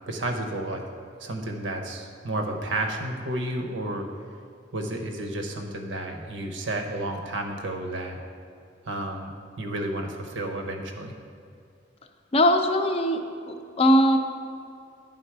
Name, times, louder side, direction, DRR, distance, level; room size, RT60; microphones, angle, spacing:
voice 1, 0.1-0.8 1.2-4.1 4.7-8.2 8.9-11.1, right 1 dB, 80° right, 4 dB, 0.8 m, -31 dB
voice 2, 12.3-13.2 13.5-14.2, equal, 30° left, 5 dB, 0.5 m, -20 dB
10.5 x 3.9 x 4.7 m, 2.5 s
head